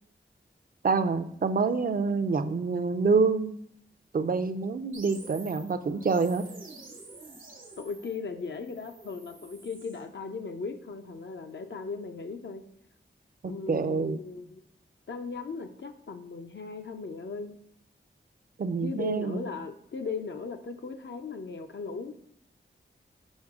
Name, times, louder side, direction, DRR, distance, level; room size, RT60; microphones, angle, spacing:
voice 1, 0.8-3.5 4.1-6.4 13.4-14.2 18.6-19.4, right 4 dB, 45° right, 10 dB, 0.4 m, -27 dB
sound 1, 4.9-10.0, right 3 dB, 80° right, 1.1 m, -48 dB
voice 2, 7.8-12.6 13.4-14.6 15.1-17.6 18.8-22.1, left 4 dB, 60° left, 6 dB, 0.5 m, -37 dB
6.3 x 4.7 x 3.6 m, 0.70 s
wide cardioid pair, 70°, 20 cm